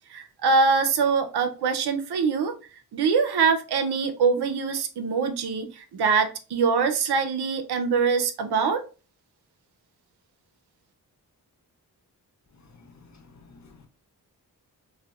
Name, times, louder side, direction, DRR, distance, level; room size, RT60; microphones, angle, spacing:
voice 1, 0.1-2.5 2.9-8.8, right 5 dB, 90° right, 0.6 m, -23 dB
voice 2, 12.7-13.9, left 4 dB, 45° left, 0.8 m, -52 dB
4.0 x 2.1 x 2.3 m
cardioid pair, 70°, 38 cm